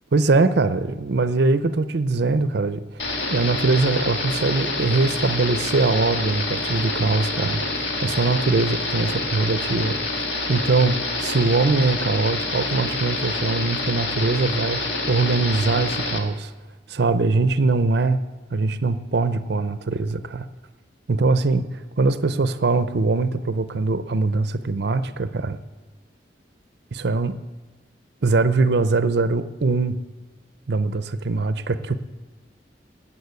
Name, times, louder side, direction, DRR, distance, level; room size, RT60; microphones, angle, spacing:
voice 1, 0.1-2.8 3.3-7.6 8.0-10.2 10.5-16.5 16.9-18.2 18.5-20.5 21.1-25.6 26.9-27.4 28.2-30.0 30.7-32.0, right 3 dB, 65° right, 12 dB, 0.6 m, -22 dB
sound 1, 3.0-16.2, left 2 dB, 85° left, 1.9 m, -27 dB
13.0 x 8.9 x 8.2 m, 1.3 s
head